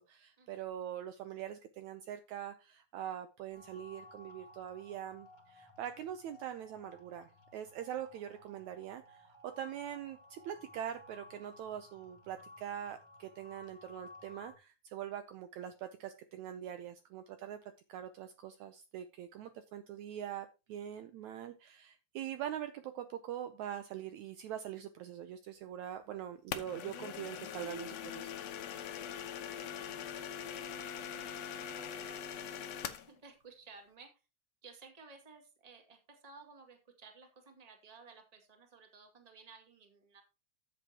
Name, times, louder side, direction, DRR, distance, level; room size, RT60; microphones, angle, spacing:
voice 1, 0.0-9.3 9.6-28.3, right 10 dB, 75° right, 9 dB, 1.8 m, -43 dB
sound 1, 3.5-14.5, left 1 dB, 25° left, 0.9 m, -57 dB
voice 2, 20.7-21.0 28.7-34.1 34.6-40.2, right 4 dB, 15° right, 3 dB, 1.6 m, -58 dB
sound 2, 26.5-33.1, left 9 dB, 65° left, 1.7 m, -42 dB
14.0 x 7.8 x 2.9 m, 0.29 s
omnidirectional pair, 3.7 m